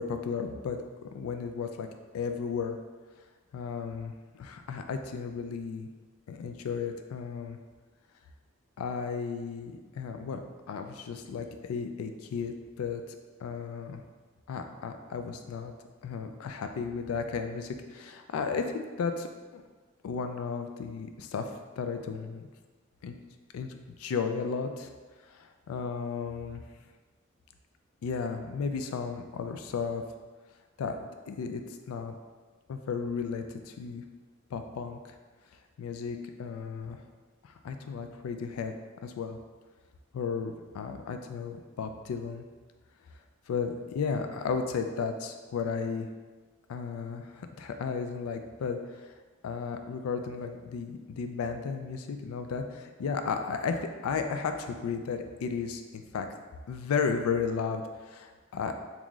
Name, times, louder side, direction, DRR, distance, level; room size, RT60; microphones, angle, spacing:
voice 1, 0.0-1.9 2.1-2.8 3.5-4.1 4.4-5.9 6.3-7.6 8.8-13.0 13.4-14.0 14.5-15.7 16.0-19.3 19.5-19.6 20.0-21.5 21.8-22.5 23.0-23.2 23.5-23.7 24.0-24.9 25.2-26.6 28.0-30.0 30.8-31.0 31.3-31.6 31.9-32.1 32.7-34.0 34.5-35.1 35.8-37.0 37.4-38.7 39.0-39.4 40.1-42.4 43.5-46.1 46.7-49.1 49.4-56.3 56.7-58.9, left 5 dB, 85° left, 6 dB, 0.3 m, -34 dB
3.8 x 3.0 x 2.3 m, 1.4 s
head